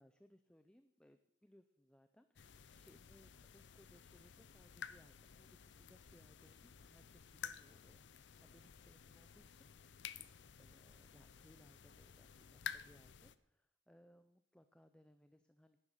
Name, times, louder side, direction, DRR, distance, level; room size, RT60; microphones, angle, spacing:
voice 1, 0.0-15.8, equal, 5° left, 9 dB, 0.5 m, -68 dB
sound 1, 2.4-13.4, left 7 dB, 75° left, 0.6 m, -53 dB
11.0 x 9.5 x 6.6 m, 0.82 s
head